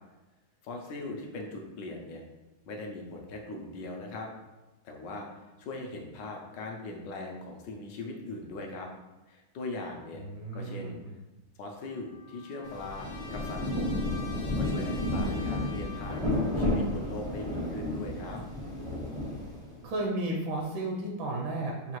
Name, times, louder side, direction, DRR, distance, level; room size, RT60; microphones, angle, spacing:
voice 1, 0.6-2.2 2.7-4.3 4.8-8.9 9.3-10.2 10.5-11.0 11.6-13.9 14.6-18.4, left 2 dB, 70° left, 1 dB, 1.1 m, -40 dB
voice 2, 10.2-11.1 19.8-22.0, right 2 dB, 75° right, -1 dB, 1.3 m, -33 dB
Trumpet, 11.7-16.6, left 5 dB, 45° left, 0.8 m, -47 dB
Rain, 12.7-19.9, left 1 dB, 5° left, 0.4 m, -32 dB
5.5 x 2.4 x 3.0 m, 1.1 s
omnidirectional pair, 2.3 m